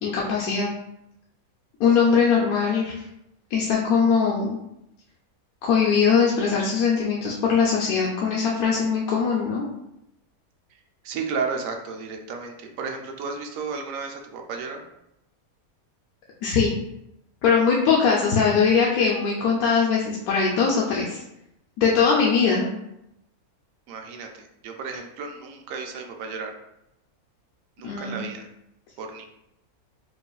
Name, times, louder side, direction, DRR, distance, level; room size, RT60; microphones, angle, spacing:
voice 1, 0.0-0.7 1.8-2.9 3.5-4.6 5.6-9.7 16.4-16.7 17.4-21.2 21.8-22.7 27.8-28.3, left 6 dB, 80° left, -3 dB, 1.0 m, -21 dB
voice 2, 11.0-14.8 23.9-26.5 27.8-28.5 29.0-29.3, right 5 dB, 70° right, 3 dB, 0.9 m, -33 dB
4.6 x 2.6 x 2.3 m, 0.83 s
omnidirectional pair, 1.5 m